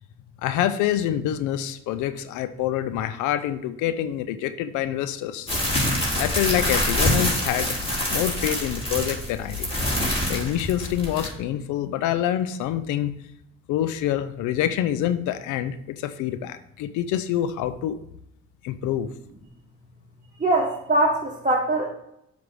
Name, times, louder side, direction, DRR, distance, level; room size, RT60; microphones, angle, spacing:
voice 1, 0.4-5.5 6.2-7.7 8.1-9.7 10.3-13.1 13.7-18.0 18.6-19.1, left 11 dB, 85° left, 12 dB, 0.5 m, -26 dB
sound 1, 5.5-11.3, left 1 dB, 20° left, 2.9 m, -25 dB
voice 2, 20.4-21.9, right 2 dB, 25° right, -3 dB, 1.5 m, -22 dB
7.7 x 3.5 x 6.3 m, 0.77 s
supercardioid pair, 55°, 29 cm